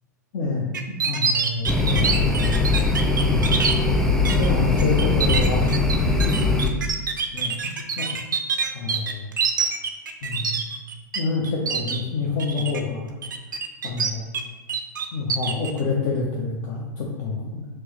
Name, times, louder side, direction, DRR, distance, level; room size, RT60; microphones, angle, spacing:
voice 1, 0.3-3.0 3.2-3.6 4.2-5.7 7.3-8.1 8.7-9.3 10.2-10.6 11.1-13.1 13.8-14.3 15.1-17.7, left 3 dB, 55° left, -2 dB, 0.6 m, -28 dB
sound 1, 0.7-3.8 4.3-4.5 4.8-11.2 11.4-12.0 12.4-12.8 13.2-14.4 14.7-15.7, right 6 dB, 85° right, 0.4 m, -25 dB
sound 2, 1.6-6.7, left 3 dB, 5° left, 0.3 m, -21 dB
4.3 x 2.0 x 3.2 m, 1.2 s
hypercardioid pair, 105°, 10 cm